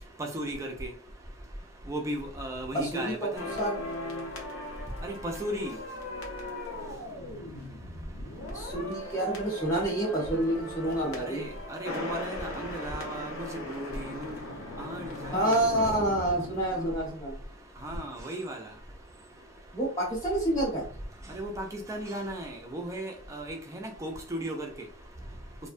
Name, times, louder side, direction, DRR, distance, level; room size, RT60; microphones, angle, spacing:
voice 1, 0.2-0.9 1.9-3.5 5.0-5.8 11.3-14.4 14.8-15.5 17.8-18.6 21.3-24.7, right 1 dB, 15° right, 0.4 m, -36 dB
voice 2, 2.7-3.3 3.6-3.7 8.5-11.4 15.3-17.4 19.7-20.8, right 1 dB, 15° left, 0.8 m, -28 dB
sound 1, 3.4-17.5 17.8-18.0, left 1 dB, 80° left, 0.7 m, -39 dB
2.5 x 2.1 x 2.5 m
head